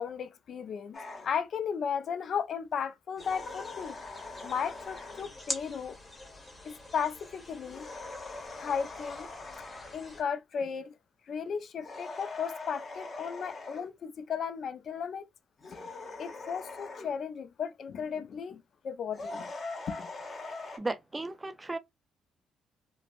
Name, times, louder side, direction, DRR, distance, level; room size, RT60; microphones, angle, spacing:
voice 1, 0.0-4.0 4.4-6.0 6.6-7.9 8.6-9.3 9.9-11.0 11.3-15.3 15.7-15.9 16.2-19.5 19.9-20.1, left 7 dB, 60° left, 0.4 m, -35 dB
sound 1, 0.9-1.3 3.2-5.4 7.6-10.0 11.8-13.9 15.6-17.1 19.1-20.8, left 3 dB, 40° left, 1.0 m, -42 dB
sound 2, 3.2-10.2, left 2 dB, 25° left, 1.1 m, -45 dB
voice 2, 20.8-21.8, right 2 dB, 20° right, 0.4 m, -35 dB
3.1 x 2.1 x 2.4 m
cardioid pair, 90°, 0 cm